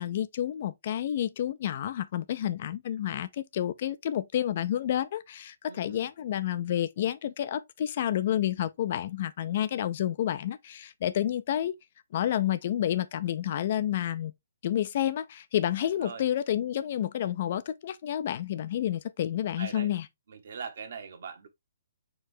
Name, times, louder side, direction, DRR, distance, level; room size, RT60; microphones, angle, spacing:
voice 1, 0.0-11.7 12.1-14.3 14.6-20.0, left 11 dB, 40° left, 0.4 m, -30 dB
voice 2, 5.7-6.1 15.8-16.2 19.6-19.9 20.3-21.5, right 6 dB, 50° right, 1.0 m, -41 dB
4.6 x 3.4 x 3.2 m
figure-of-eight pair, 125°, 0 cm